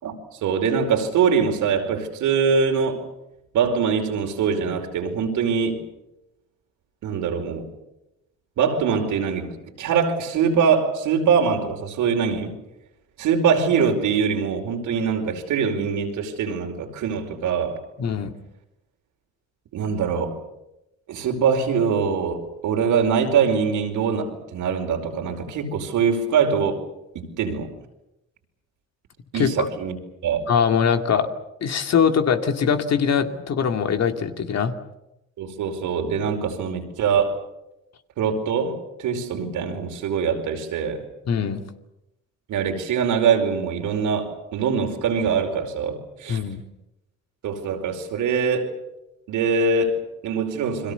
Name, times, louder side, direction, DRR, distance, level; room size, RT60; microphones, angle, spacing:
voice 1, 0.0-3.1 3.5-5.9 7.0-7.7 8.6-12.5 13.2-17.8 19.7-20.4 21.1-26.8 27.1-27.7 29.3-29.9 30.2-30.5 35.4-37.4 38.2-41.0 42.5-46.4 47.4-48.7 49.3-50.9, right 6 dB, 85° right, 3 dB, 5.0 m, -23 dB
voice 2, 18.0-18.3 29.3-29.7 30.5-31.3 31.6-34.7 41.3-41.6 46.3-46.6, left 7 dB, 60° left, 6 dB, 2.5 m, -22 dB
30.0 x 22.5 x 7.0 m, 0.90 s
cardioid pair, 90°, 30 cm